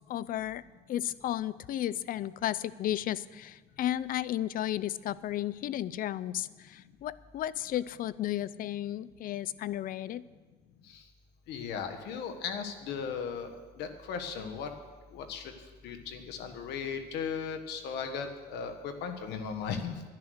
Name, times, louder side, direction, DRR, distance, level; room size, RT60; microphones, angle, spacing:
voice 1, 0.1-0.6 0.9-10.2, left 12 dB, 55° left, 19 dB, 0.5 m, -33 dB
voice 2, 11.5-14.7 15.1-15.5 15.8-19.9, left 6 dB, 85° left, 6 dB, 1.4 m, -37 dB
11.0 x 10.5 x 6.4 m, 1.4 s
cardioid pair, 110°, 17 cm